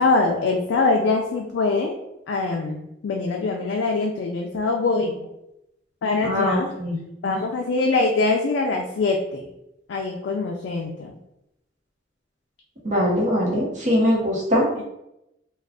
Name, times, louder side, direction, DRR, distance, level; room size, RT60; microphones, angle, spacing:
voice 1, 0.0-1.9 2.3-5.2 6.0-6.7 7.2-9.5 9.9-11.2, left 3 dB, 70° left, 2 dB, 0.3 m, -23 dB
voice 2, 6.2-7.0 12.8-14.6, equal, 40° right, -3 dB, 0.9 m, -21 dB
2.4 x 2.3 x 3.5 m, 0.85 s
head